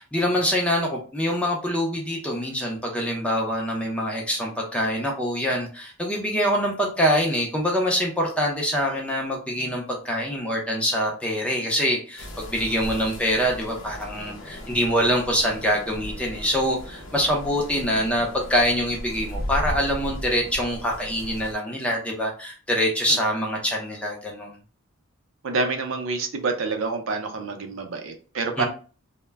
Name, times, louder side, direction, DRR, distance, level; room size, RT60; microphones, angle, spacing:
voice 1, 0.0-24.6 28.6-28.7, equal, 5° left, -1 dB, 0.4 m, -25 dB
sound 1, 12.2-21.6, equal, 60° left, 0.6 m, -36 dB
voice 2, 25.4-28.7, right 4 dB, 65° right, 5 dB, 0.5 m, -27 dB
2.1 x 2.0 x 3.3 m, 0.38 s
head